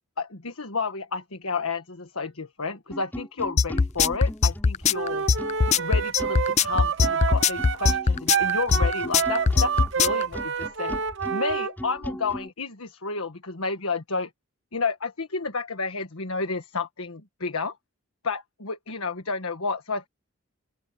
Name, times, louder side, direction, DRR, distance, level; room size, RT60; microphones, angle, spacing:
voice 1, 0.2-5.3 5.7-10.9 11.3-14.3 14.7-17.8 18.2-20.1, left 4 dB, 75° left, 1.6 m, -31 dB
sound 1, 2.9-12.5, equal, 10° left, 5.2 m, -38 dB
sound 2, 3.6-10.2, left 5 dB, 30° left, 0.4 m, -20 dB
Wind instrument woodwind instrument, 4.9-11.7, right 6 dB, 55° right, 1.0 m, -28 dB
open air
head